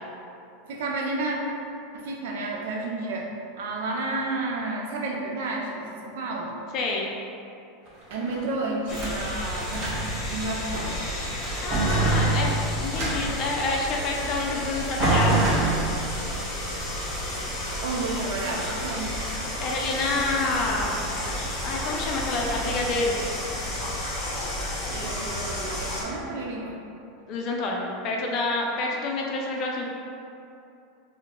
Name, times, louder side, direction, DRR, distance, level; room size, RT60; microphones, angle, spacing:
voice 1, 0.7-1.4 1.9-3.3 3.6-6.5 8.1-9.8 10.3-10.9 17.8-19.1 24.9-26.8, right 2 dB, 75° right, -1 dB, 0.5 m, -31 dB
voice 2, 6.7-7.1 11.6-12.5 12.8-15.5 19.6-21.0 21.6-23.2 27.3-29.8, left 3 dB, 50° left, -1 dB, 0.4 m, -28 dB
sound 1, 7.9-9.2 9.6-10.2 10.6-11.1 11.4-13.6 14.5-14.6 15.0-16.2, right 2 dB, 50° right, 1.0 m, -25 dB
sound 2, 8.9-26.0, left 1 dB, 35° left, 1.0 m, -32 dB
2.8 x 2.1 x 3.7 m, 2.7 s
hypercardioid pair, 105°, 0 cm